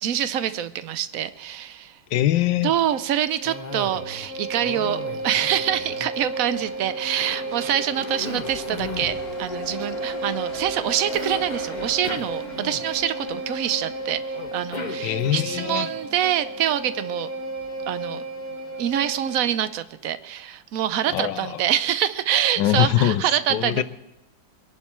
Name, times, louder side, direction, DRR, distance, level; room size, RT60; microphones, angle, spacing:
voice 1, 0.0-2.0 2.6-17.3 17.9-18.2 18.8-23.8, right 10 dB, 60° right, 13 dB, 1.0 m, -25 dB
voice 2, 2.1-2.7 15.0-15.9 21.1-21.6 22.6-23.2 23.5-23.8, left 13 dB, 80° left, 15 dB, 1.3 m, -22 dB
Bowed string instrument, 2.9-19.5, right 2 dB, 10° right, 3.8 m, -34 dB
Cough, 3.4-4.3 4.6-6.6 7.2-9.1 11.1-13.1 14.3-15.7, left 4 dB, 35° left, 0.8 m, -37 dB
sound 1, 4.1-19.8, left 3 dB, 55° left, 2.0 m, -42 dB
23.5 x 11.0 x 4.5 m, 1.0 s
omnidirectional pair, 1.9 m